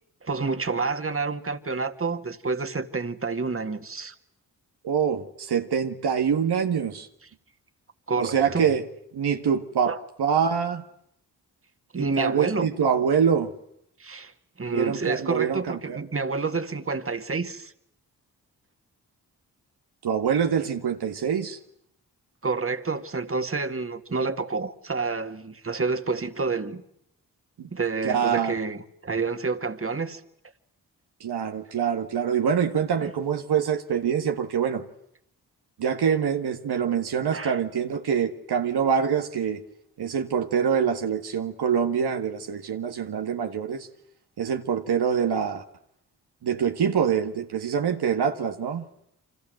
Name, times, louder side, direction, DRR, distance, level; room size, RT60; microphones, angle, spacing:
voice 1, 0.2-4.1 8.1-8.7 9.8-10.0 11.9-12.7 14.0-14.3 14.6-17.7 22.4-26.8 27.7-30.2 33.0-33.1 37.3-37.6, right 4 dB, 35° right, 2.0 m, -29 dB
voice 2, 4.8-7.1 8.2-8.9 9.1-9.9 10.2-10.8 12.0-13.5 14.7-16.0 20.0-21.6 27.6-27.7 28.0-28.5 31.2-34.8 35.8-39.6 40.0-43.9 44.4-45.6 46.4-48.8, right 7 dB, 85° right, 1.8 m, -25 dB
29.5 x 25.5 x 7.9 m
cardioid pair, 50°, 38 cm